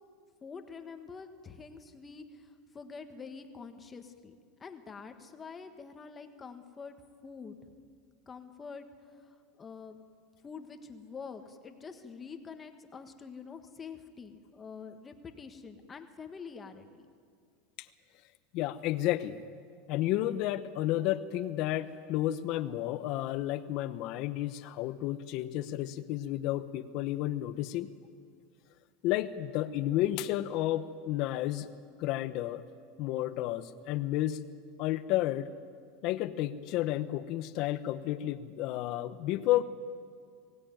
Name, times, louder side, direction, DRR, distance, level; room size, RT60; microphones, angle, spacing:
voice 1, 0.4-4.3 4.6-6.9 7.2-7.6 8.3-10.0 10.4-17.1, left 5 dB, 20° left, 7 dB, 1.5 m, -46 dB
voice 2, 18.5-19.4 19.9-27.9 29.0-31.7 32.0-32.6 33.0-34.4 34.8-35.5 36.0-39.6, left 14 dB, 50° left, 12 dB, 0.9 m, -31 dB
23.0 x 16.5 x 9.2 m, 2.1 s
supercardioid pair, 135°, 0 cm